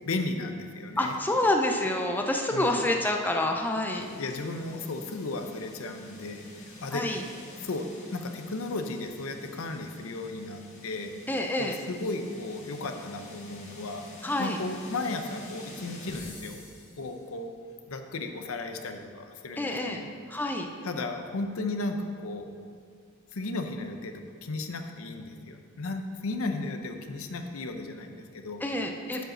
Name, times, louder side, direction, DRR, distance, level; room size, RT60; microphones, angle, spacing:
voice 1, 0.1-1.2 2.5-2.9 4.0-7.1 7.6-11.1 11.6-14.1 14.4-16.6 17.0-17.5 17.9-20.1 20.8-22.5 23.3-28.6, left 2 dB, 75° left, 6 dB, 0.7 m, -35 dB
voice 2, 1.0-4.1 6.9-7.2 11.3-11.7 14.2-14.6 19.6-20.0 20.3-20.7 28.6-29.2, left 1 dB, 10° left, 2 dB, 0.5 m, -27 dB
sound 1, 4.0-17.2, left 1 dB, 35° left, 1.7 m, -47 dB
7.8 x 5.0 x 6.1 m, 2.1 s
head